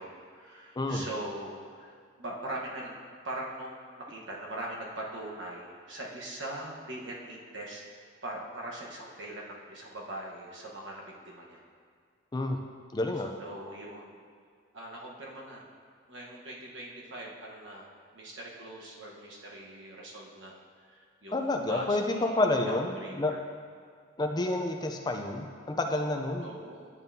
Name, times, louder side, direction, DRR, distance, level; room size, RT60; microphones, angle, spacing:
voice 1, 0.0-2.9 3.2-7.8 8.2-11.6 13.4-14.2 14.7-15.6 16.1-17.9 18.1-20.5 20.9-22.4 22.7-22.8 23.0-23.4 26.4-26.9, right 1 dB, 65° right, -3 dB, 1.2 m, -41 dB
voice 2, 12.9-13.3 21.3-23.3 24.2-26.5, left 2 dB, 20° left, 3 dB, 0.4 m, -29 dB
11.0 x 5.4 x 2.7 m, 2.1 s
head